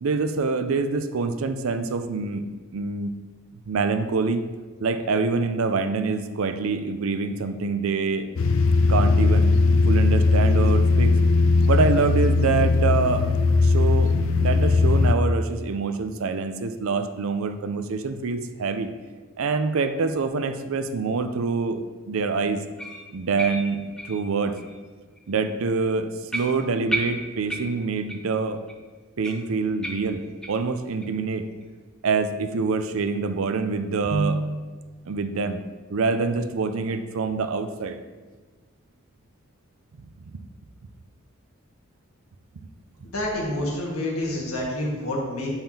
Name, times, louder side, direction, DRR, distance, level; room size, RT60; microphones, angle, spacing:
voice 1, 0.0-2.4 2.7-3.1 3.7-4.4 4.8-8.3 8.9-9.5 9.9-11.1 11.7-13.3 13.6-18.9 19.4-22.6 23.1-24.6 25.3-28.6 29.2-31.5 32.0-34.7 35.1-35.6 35.9-38.0, right 4 dB, 75° right, 9 dB, 0.5 m, -25 dB
sound 1, 8.4-15.1, left 3 dB, 65° left, 0.4 m, -19 dB
sound 2, 22.8-24.8 25.2-25.3 25.8-25.9 26.3-28.4 28.7-28.8 29.2-30.7 31.0-31.1 31.6-31.7 32.2-32.3, right 1 dB, 5° left, 0.6 m, -34 dB
voice 2, 43.1-45.5, left 1 dB, 90° left, -3 dB, 1.7 m, -28 dB
8.7 x 5.6 x 2.8 m, 1.3 s
head